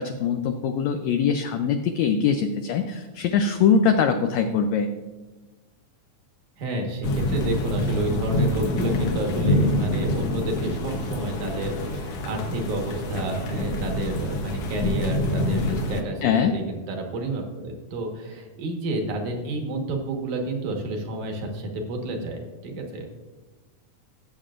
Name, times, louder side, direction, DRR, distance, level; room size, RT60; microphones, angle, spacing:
voice 1, 0.0-4.9 16.2-16.5, left 6 dB, 80° left, 6 dB, 1.6 m, -22 dB
voice 2, 6.6-23.1, right 2 dB, 70° right, 2 dB, 2.8 m, -30 dB
sound 1, 7.0-16.0, left 1 dB, 60° left, 1.8 m, -26 dB
17.5 x 7.6 x 2.5 m, 1.2 s
omnidirectional pair, 3.7 m